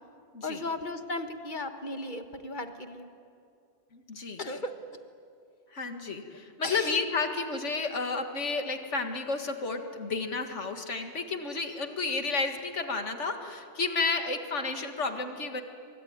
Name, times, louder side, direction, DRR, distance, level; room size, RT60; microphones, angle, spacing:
voice 1, 0.4-3.1 4.4-4.8 6.6-7.0, left 2 dB, 45° left, 7 dB, 1.6 m, -36 dB
voice 2, 3.9-4.4 5.7-15.6, left 4 dB, 90° left, 6 dB, 2.2 m, -31 dB
24.0 x 24.0 x 9.5 m, 2.4 s
omnidirectional pair, 1.2 m